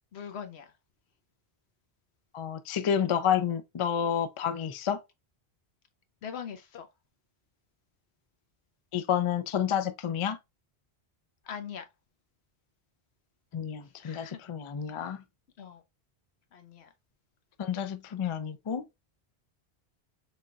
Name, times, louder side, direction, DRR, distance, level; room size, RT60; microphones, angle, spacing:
voice 1, 0.1-0.7 6.2-6.9 11.5-11.8 14.0-14.4 15.6-15.8 16.5-16.9, left 7 dB, 80° left, 1.0 m, -41 dB
voice 2, 2.3-5.0 8.9-10.4 13.5-15.2 17.6-18.8, left 8 dB, 55° left, 0.3 m, -29 dB
3.8 x 3.8 x 2.2 m
omnidirectional pair, 1.1 m